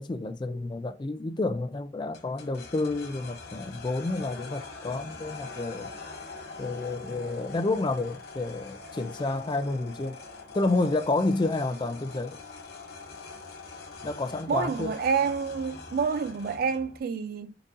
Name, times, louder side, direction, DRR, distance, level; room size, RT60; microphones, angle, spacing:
voice 1, 0.0-5.9 6.6-10.2 10.5-12.4 14.0-14.9, left 2 dB, 25° left, 0.4 m, -30 dB
sound 1, 2.1-17.0, left 4 dB, 60° left, 1.0 m, -43 dB
voice 2, 14.5-17.5, right 6 dB, 55° right, 0.3 m, -28 dB
3.9 x 2.7 x 3.6 m
head